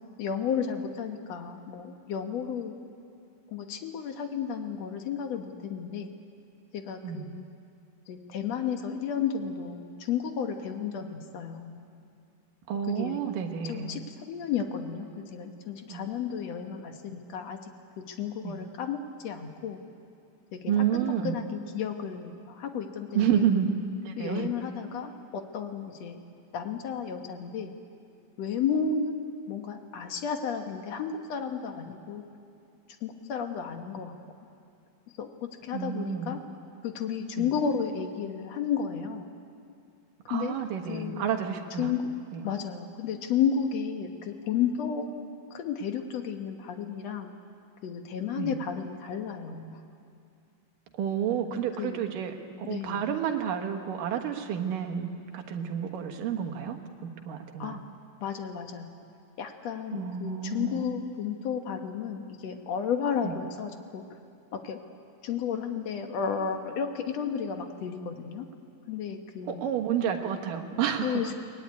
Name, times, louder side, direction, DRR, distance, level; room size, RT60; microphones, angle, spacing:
voice 1, 0.2-2.8 3.5-6.1 6.7-7.4 8.1-11.8 12.9-13.2 13.6-17.6 18.0-19.8 20.5-20.9 21.2-23.5 24.2-26.2 26.5-27.7 28.4-32.2 33.0-34.2 35.2-36.4 36.8-39.3 40.3-40.6 40.9-41.3 41.8-42.1 42.4-45.2 45.5-47.3 47.8-49.8 51.8-52.0 52.6-53.0 57.6-57.9 58.2-58.9 59.4-64.0 64.5-64.8 65.2-68.5 68.9-69.6 71.0-71.3, left 7 dB, 60° left, 5 dB, 2.0 m, -32 dB
voice 2, 12.7-14.0 15.9-16.1 18.4-18.6 20.7-21.3 23.1-23.7 24.0-24.5 35.7-36.3 37.4-37.5 40.3-41.9 42.3-42.4 48.4-48.5 51.0-56.8 57.0-57.8 59.9-60.9 63.2-63.3 69.5-71.2, right 8 dB, 70° right, 4 dB, 3.0 m, -30 dB
23.5 x 19.0 x 9.6 m, 2.5 s
omnidirectional pair, 4.0 m